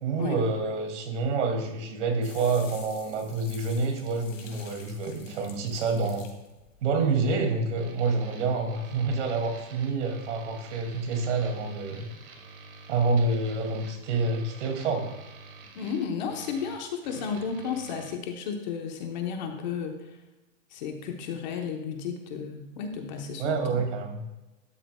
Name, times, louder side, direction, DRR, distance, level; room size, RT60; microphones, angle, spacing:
voice 1, 0.0-6.3 6.8-12.1 12.9-15.1 23.4-24.2, right 3 dB, 60° right, 3 dB, 2.4 m, -28 dB
sound 1, 2.2-7.4, left 7 dB, 70° left, 2.5 m, -50 dB
sound 2, 7.8-18.1, right 4 dB, 45° right, 1.9 m, -48 dB
voice 2, 15.7-20.1 20.7-23.8, left 6 dB, 35° left, 4 dB, 0.9 m, -33 dB
12.5 x 9.8 x 2.2 m, 1.0 s
supercardioid pair, 175°, 39 cm